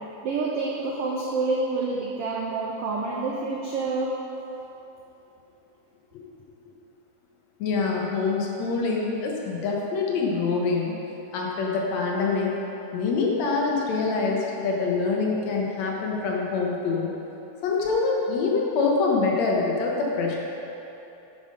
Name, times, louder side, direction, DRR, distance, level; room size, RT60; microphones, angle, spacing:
voice 1, 0.2-4.1, right 3 dB, 90° right, -3 dB, 1.3 m, -28 dB
voice 2, 7.6-11.0 11.3-12.5 12.9-17.1 17.6-20.4, left 4 dB, 70° left, -2 dB, 1.9 m, -25 dB
9.2 x 6.4 x 5.1 m, 3.0 s
omnidirectional pair, 3.7 m